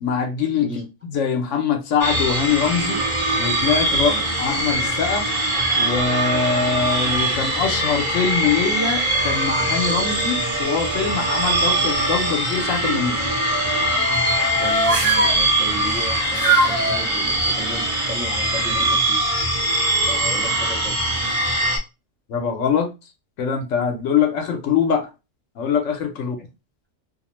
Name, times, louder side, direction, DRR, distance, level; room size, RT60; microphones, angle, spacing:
voice 1, 0.0-3.0 3.4-5.3 5.8-13.2 22.3-22.9 23.4-25.1 25.6-26.4, left 6 dB, 75° left, 1.0 m, -23 dB
sound 1, 2.0-21.8, right 1 dB, 35° right, 0.9 m, -22 dB
voice 2, 3.9-4.2 14.6-19.2 20.1-21.0, equal, 15° right, 0.6 m, -34 dB
sound 2, 7.0-7.8 8.4-12.3 13.2-15.4 16.3-17.0, right 2 dB, 75° right, 1.1 m, -25 dB
2.7 x 2.0 x 2.9 m
omnidirectional pair, 1.3 m